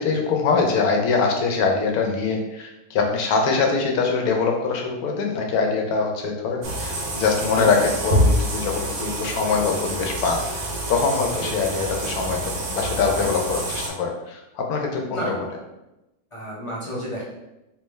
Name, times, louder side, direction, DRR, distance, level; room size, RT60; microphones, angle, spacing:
voice 1, 0.0-15.3, left 4 dB, 75° left, 2 dB, 1.1 m, -23 dB
sound 1, 6.6-13.9, right 1 dB, 85° right, 1.3 m, -27 dB
voice 2, 15.0-15.7 16.3-17.2, right 1 dB, 40° left, -5 dB, 0.4 m, -32 dB
3.4 x 3.0 x 3.1 m, 0.95 s
omnidirectional pair, 1.6 m